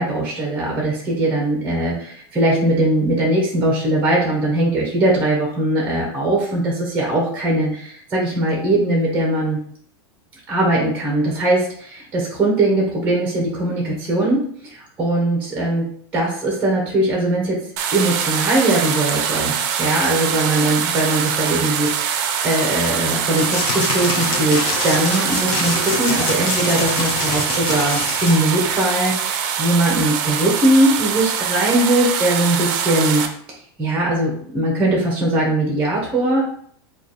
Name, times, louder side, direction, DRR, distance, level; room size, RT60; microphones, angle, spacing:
voice 1, 0.0-9.6 10.5-15.9 16.1-17.6 17.9-33.3 33.8-36.4, right 1 dB, 10° right, -2 dB, 0.8 m, -20 dB
sound 1, 17.8-33.3, right 7 dB, 50° right, 0.5 m, -23 dB
sound 2, 23.4-28.4, left 4 dB, 45° left, 0.7 m, -25 dB
3.2 x 2.3 x 3.9 m, 0.62 s
supercardioid pair, 160°, 13 cm